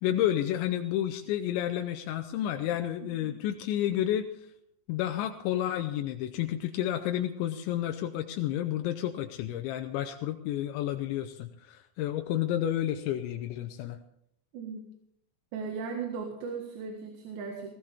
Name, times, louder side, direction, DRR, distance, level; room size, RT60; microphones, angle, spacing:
voice 1, 0.0-4.3 4.9-14.0, left 12 dB, 85° left, 5 dB, 3.0 m, -30 dB
voice 2, 15.5-17.8, right 5 dB, 75° right, 2 dB, 3.8 m, -37 dB
19.0 x 15.5 x 3.6 m, 0.74 s
omnidirectional pair, 5.2 m